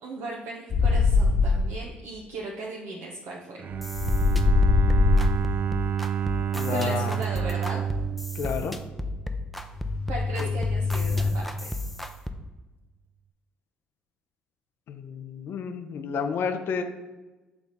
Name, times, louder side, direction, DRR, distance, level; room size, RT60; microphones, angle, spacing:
voice 1, 0.0-3.6 6.7-7.8 10.1-11.7, right 2 dB, 75° right, -2 dB, 0.9 m, -37 dB
sound 1, 0.7-1.7 3.9-5.5 9.7-11.3, left 4 dB, 45° left, 1.0 m, -22 dB
Bowed string instrument, 3.6-9.5, right 9 dB, 50° right, 0.4 m, -29 dB
sound 2, 3.7-12.3, left 2 dB, ahead, 0.6 m, -34 dB
voice 2, 6.5-7.2 8.3-8.8 10.4-10.5 14.9-16.8, left 6 dB, 65° left, 6 dB, 0.5 m, -30 dB
7.0 x 3.4 x 4.0 m, 1.1 s
hypercardioid pair, 55°, 4 cm